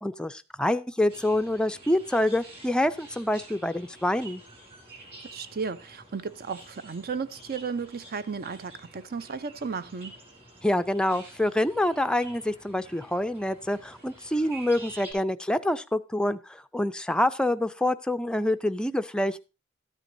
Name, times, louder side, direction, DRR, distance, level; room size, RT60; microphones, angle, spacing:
voice 1, 0.0-4.4 10.6-19.4, left 1 dB, 5° left, 0.4 m, -26 dB
sound 1, 1.1-15.1, right 2 dB, 30° right, 4.8 m, -49 dB
voice 2, 5.3-10.2, right 5 dB, 45° right, 0.6 m, -34 dB
13.0 x 9.1 x 2.6 m
head